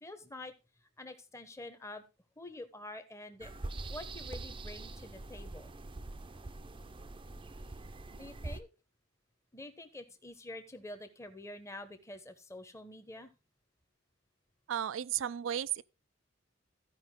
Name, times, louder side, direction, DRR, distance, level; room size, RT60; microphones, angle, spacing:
voice 1, 0.0-0.5 1.0-2.0 2.4-3.5 3.9-5.7 8.2-8.7 9.5-13.3, left 1 dB, 15° left, 0.9 m, -47 dB
sound 1, 3.4-8.6, right 2 dB, 25° right, 0.6 m, -44 dB
voice 2, 14.7-15.8, right 10 dB, 85° right, 0.4 m, -34 dB
14.0 x 5.2 x 3.7 m
head